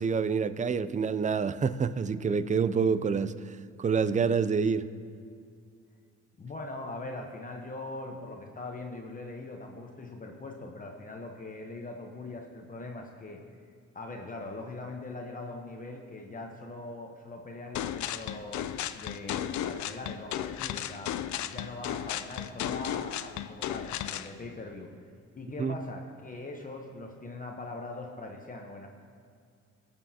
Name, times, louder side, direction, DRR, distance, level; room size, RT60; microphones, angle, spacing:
voice 1, 0.0-3.3 3.8-4.9 25.6-25.7, right 5 dB, 25° right, 14 dB, 0.4 m, -27 dB
voice 2, 6.4-13.4 13.9-18.7 18.9-21.1 21.5-24.9 25.3-28.9, left 2 dB, 25° left, 2 dB, 1.0 m, -41 dB
sound 1, 17.7-24.3, left 11 dB, 70° left, 0.5 m, -34 dB
20.5 x 7.0 x 2.8 m, 2.3 s
cardioid pair, 90°, 30 cm